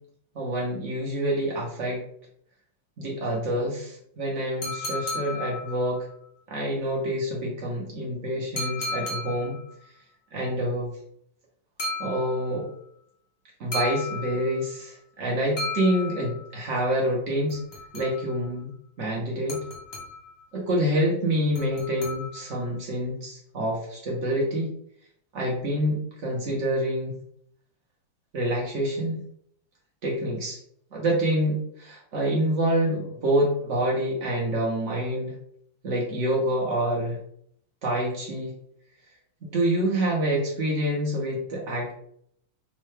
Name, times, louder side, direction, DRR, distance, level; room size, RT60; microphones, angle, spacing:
voice 1, 0.3-2.0 3.0-6.1 6.5-9.6 10.3-10.9 12.0-12.7 13.6-17.6 17.9-18.7 19.0-19.6 20.5-24.7 25.3-27.2 28.3-29.2 30.0-30.6 30.9-35.3 35.8-37.2 37.8-38.5 39.4-41.9, right 1 dB, 75° right, -2 dB, 0.6 m, -27 dB
sound 1, 4.6-6.1 8.6-9.7 11.8-12.7 13.7-14.7 15.6-16.6 17.5-18.5 19.5-20.4 21.5-22.6, left 2 dB, 50° left, 0.7 m, -35 dB
3.6 x 2.2 x 3.1 m, 0.67 s
omnidirectional pair, 2.3 m